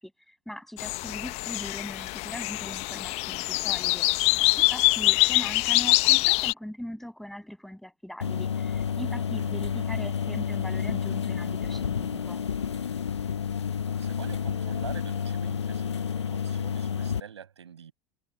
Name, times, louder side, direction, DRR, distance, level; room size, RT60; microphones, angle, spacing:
voice 1, 0.3-4.1 4.6-12.4, equal, ahead, 7.2 m, -40 dB
sound 1, 0.8-6.5, left 24 dB, 45° left, 1.1 m, -24 dB
sound 2, 8.2-17.2, left 7 dB, 75° left, 1.5 m, -30 dB
voice 2, 13.1-13.5 14.0-17.9, right 8 dB, 75° right, 7.2 m, -46 dB
figure-of-eight pair, 80°, 15 cm